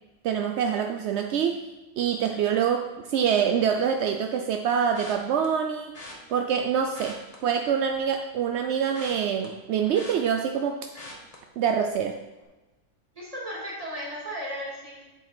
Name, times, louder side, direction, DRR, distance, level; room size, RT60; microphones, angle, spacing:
voice 1, 0.2-1.6 2.0-5.9 6.3-10.9 11.6-12.2, right 7 dB, 65° right, 5 dB, 0.7 m, -25 dB
sound 1, 4.9-5.5 5.9-6.2 6.8-8.1 8.4-10.6 10.9-11.4 11.8-12.1 12.4-12.5, left 2 dB, 25° left, 1.4 m, -44 dB
voice 2, 13.1-15.0, equal, 20° right, -5 dB, 2.7 m, -35 dB
7.8 x 7.4 x 4.4 m, 1.1 s
omnidirectional pair, 1.6 m